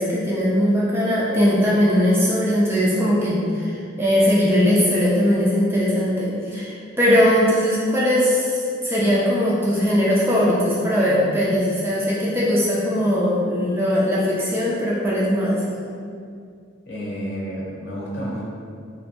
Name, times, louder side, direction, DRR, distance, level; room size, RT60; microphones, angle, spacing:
voice 1, 0.0-15.6, equal, 10° right, -6 dB, 0.3 m, -20 dB
voice 2, 16.9-18.4, equal, 55° left, -6 dB, 0.8 m, -30 dB
3.2 x 2.6 x 2.9 m, 2.3 s
head